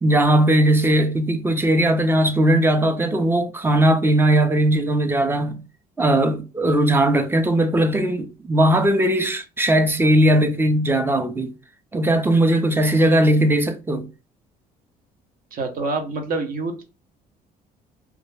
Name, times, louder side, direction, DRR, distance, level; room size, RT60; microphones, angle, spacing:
voice 1, 0.0-5.6 6.0-11.5 11.9-14.1, right 1 dB, 15° right, 0.4 m, -18 dB
voice 2, 15.5-16.8, right 3 dB, 60° right, 0.7 m, -26 dB
2.3 x 2.0 x 3.2 m
cardioid pair, 110°, 17 cm